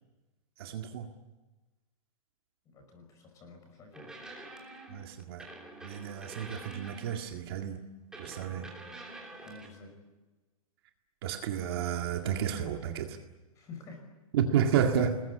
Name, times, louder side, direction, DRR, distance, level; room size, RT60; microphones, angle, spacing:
voice 1, 0.6-1.1 4.9-5.5 5.8-7.8 8.2-8.7 11.2-13.2 14.3-15.2, right 8 dB, 45° right, 4 dB, 2.0 m, -31 dB
voice 2, 2.7-4.3 9.4-10.0 13.6-14.1, left 3 dB, 15° left, 5 dB, 5.4 m, -50 dB
sound 1, 3.9-7.4 8.1-9.7, right 2 dB, 5° right, 3.3 m, -47 dB
28.5 x 21.0 x 9.8 m, 1.2 s
hypercardioid pair, 175°, 18 cm